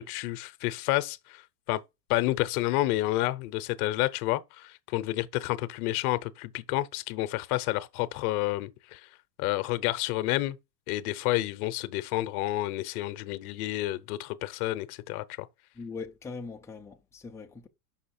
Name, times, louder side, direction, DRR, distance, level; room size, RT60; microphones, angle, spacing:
voice 1, 0.0-1.4 1.7-1.8 2.1-9.1 9.4-10.6 10.9-15.5, left 17 dB, 60° left, 0.8 m, -30 dB
voice 2, 15.8-17.7, left 4 dB, 5° left, 0.4 m, -41 dB
6.0 x 5.7 x 4.3 m
supercardioid pair, 130°, 49 cm